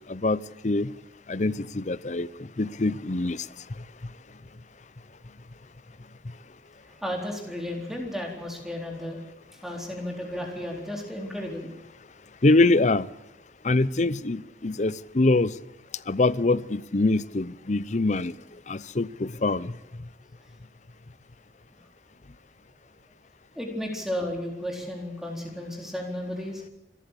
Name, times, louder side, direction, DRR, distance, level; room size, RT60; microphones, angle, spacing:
voice 1, 0.1-0.9 1.3-2.3 2.6-3.5 12.4-13.1 13.6-15.5 16.1-18.3 18.7-19.7, left 2 dB, 40° left, 18 dB, 0.7 m, -24 dB
voice 2, 6.9-9.2 9.6-11.7 23.5-26.6, left 1 dB, ahead, 1 dB, 4.0 m, -33 dB
27.0 x 14.0 x 8.4 m, 0.92 s
head